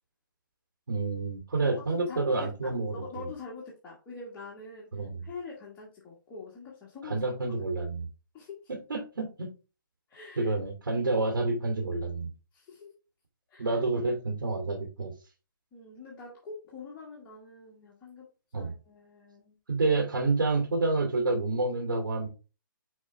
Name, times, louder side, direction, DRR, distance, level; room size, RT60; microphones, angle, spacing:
voice 1, 0.9-3.0 4.9-5.2 7.1-8.1 8.9-9.5 10.4-12.3 13.6-15.1 18.5-18.7 19.7-22.3, right 3 dB, 90° right, 1 dB, 2.5 m, -28 dB
voice 2, 1.5-4.9 5.2-7.3 8.3-8.7 10.1-10.5 12.5-12.9 13.5-13.8 15.7-18.3 18.5-19.6, left 4 dB, 15° left, -5 dB, 1.5 m, -44 dB
6.2 x 4.9 x 3.3 m, 0.33 s
hypercardioid pair, 160°, 11 cm